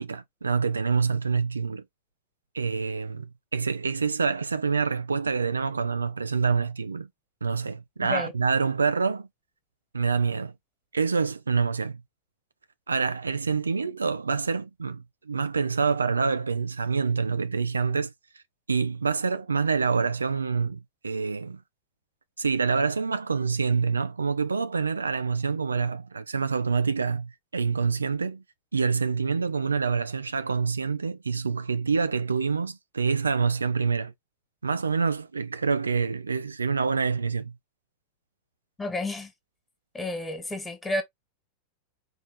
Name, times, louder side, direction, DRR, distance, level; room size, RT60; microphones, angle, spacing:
voice 1, 0.0-1.8 2.5-7.1 7.4-9.3 9.9-10.5 10.9-12.0 12.9-18.1 18.7-21.6 22.4-28.4 28.7-34.1 34.6-37.5, right 5 dB, 75° right, 0.4 m, -26 dB
voice 2, 38.8-39.3 39.9-41.0, left 2 dB, 10° left, 1.6 m, -31 dB
4.8 x 3.1 x 3.5 m
figure-of-eight pair, 90°, 0 cm